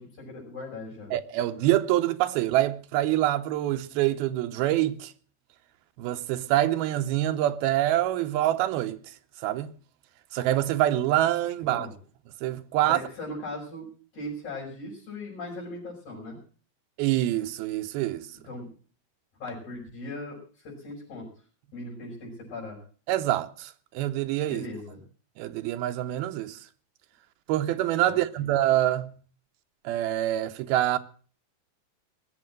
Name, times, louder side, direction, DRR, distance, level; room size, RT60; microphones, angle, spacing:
voice 1, 0.0-1.1 11.7-11.9 12.8-13.9 14.1-16.4 18.4-18.7 19.4-21.3 21.7-22.8 24.5-25.0 28.1-28.2, left 2 dB, 50° left, 7.6 m, -38 dB
voice 2, 1.1-5.1 6.0-9.1 9.4-9.7 10.3-11.9 12.4-13.0 17.0-18.3 23.1-24.7 25.4-26.7 27.5-29.1 29.8-31.0, right 14 dB, 90° right, 2.8 m, -26 dB
20.0 x 7.8 x 7.6 m
omnidirectional pair, 4.2 m